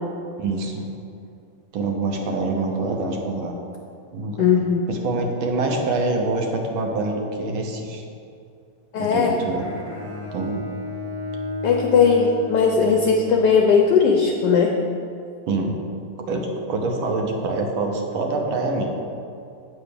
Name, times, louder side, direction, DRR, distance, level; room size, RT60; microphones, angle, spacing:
voice 1, 0.4-0.8 1.7-3.6 4.1-4.5 4.9-8.0 9.0-9.7 10.3-10.7 15.5-15.8 16.2-18.9, right 3 dB, 70° right, 2 dB, 1.6 m, -25 dB
voice 2, 4.4-4.8 8.9-9.4 11.6-14.8, left 5 dB, 75° left, 1 dB, 1.0 m, -18 dB
Bowed string instrument, 9.4-13.6, left 1 dB, 20° right, 2.0 m, -32 dB
8.1 x 4.0 x 6.6 m, 2.5 s
omnidirectional pair, 2.4 m